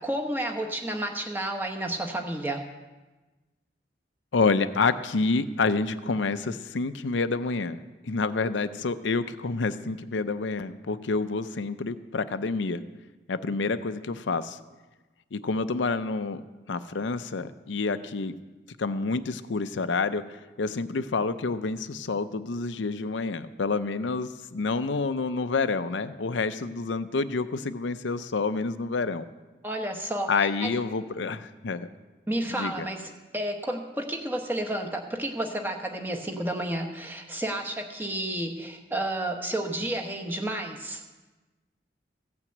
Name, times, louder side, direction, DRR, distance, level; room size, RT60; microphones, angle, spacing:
voice 1, 0.0-2.6 29.6-30.7 32.3-33.1 33.3-41.0, right 1 dB, 10° right, 3 dB, 1.1 m, -31 dB
voice 2, 4.3-12.8 13.3-14.6 15.3-16.4 16.7-18.3 18.8-20.2 20.6-29.3 30.3-31.9 32.5-32.9, left 4 dB, 90° left, 11 dB, 0.6 m, -28 dB
15.5 x 6.0 x 7.9 m, 1.2 s
head